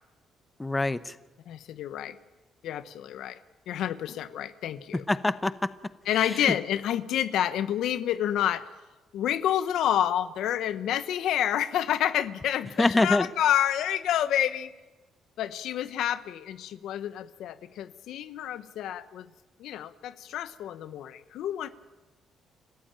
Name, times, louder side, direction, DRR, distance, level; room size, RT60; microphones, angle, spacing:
voice 1, 0.6-1.2 5.1-5.5 6.4-6.5 12.8-13.3, left 2 dB, 15° left, 14 dB, 0.9 m, -24 dB
voice 2, 1.5-2.2 2.6-3.4 3.7-5.0 6.1-8.6 9.1-14.7 15.4-19.3 19.6-21.7, left 11 dB, 80° left, 14 dB, 1.1 m, -29 dB
29.0 x 14.5 x 8.9 m, 1.2 s
cardioid pair, 90°, 0 cm